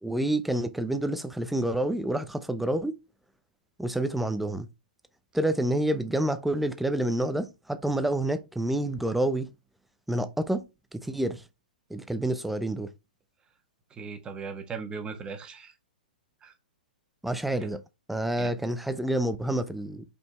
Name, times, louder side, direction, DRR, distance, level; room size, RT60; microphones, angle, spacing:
voice 1, 0.0-2.9 3.8-4.7 5.3-9.5 10.1-10.6 10.9-11.4 11.9-12.9 17.2-17.8 18.1-20.0, right 1 dB, ahead, 0.7 m, -28 dB
voice 2, 13.9-15.7 16.4-16.5 18.4-18.5, right 5 dB, 15° right, 1.4 m, -38 dB
5.4 x 4.4 x 4.2 m
hypercardioid pair, 120°, 5 cm